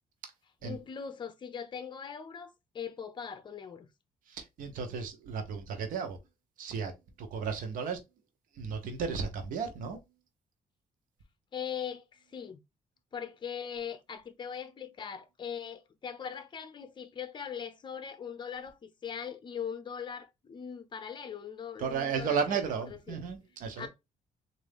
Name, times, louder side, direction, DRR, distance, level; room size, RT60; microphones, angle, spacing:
voice 1, 0.6-3.9 11.5-12.6 13.1-23.2 23.8-23.9, left 7 dB, 35° left, 0.6 m, -40 dB
voice 2, 4.3-6.2 6.6-6.9 7.2-8.0 8.6-10.0 21.8-23.9, right 6 dB, 85° right, 0.9 m, -34 dB
3.7 x 2.6 x 3.4 m
cardioid pair, 130°, 14 cm